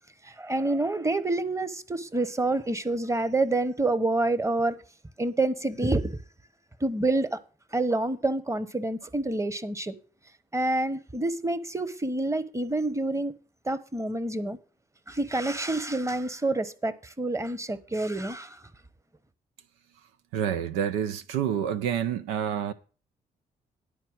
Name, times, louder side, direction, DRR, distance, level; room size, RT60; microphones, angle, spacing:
voice 1, 0.2-4.8 5.2-6.2 6.8-7.4 7.7-9.9 10.5-13.3 13.6-14.6 15.1-18.6, right 2 dB, 15° right, 1.1 m, -27 dB
voice 2, 20.3-22.7, right 9 dB, 90° right, 0.5 m, -28 dB
11.0 x 4.6 x 7.6 m
hypercardioid pair, 45°, 20 cm